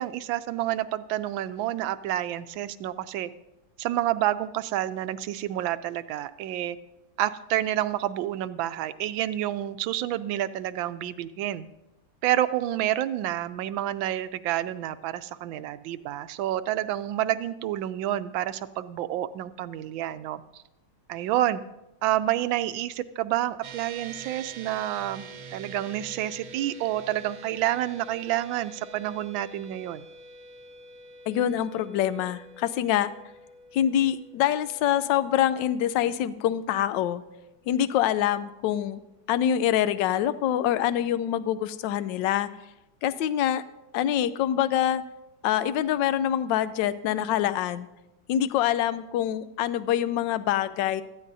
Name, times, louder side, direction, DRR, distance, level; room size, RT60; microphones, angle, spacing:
voice 1, 0.0-3.3 3.8-6.8 7.2-11.6 12.2-20.4 21.1-21.6 22.0-30.0, right 13 dB, 80° right, 12 dB, 1.4 m, -29 dB
sound 1, 23.6-37.2, right 3 dB, 55° right, 1.1 m, -46 dB
voice 2, 31.3-33.1 33.7-37.2 37.7-39.0 39.3-42.5 43.0-43.6 43.9-45.0 45.4-47.9 48.3-51.0, left 11 dB, 75° left, 14 dB, 1.2 m, -25 dB
17.0 x 13.5 x 2.7 m, 0.95 s
omnidirectional pair, 2.1 m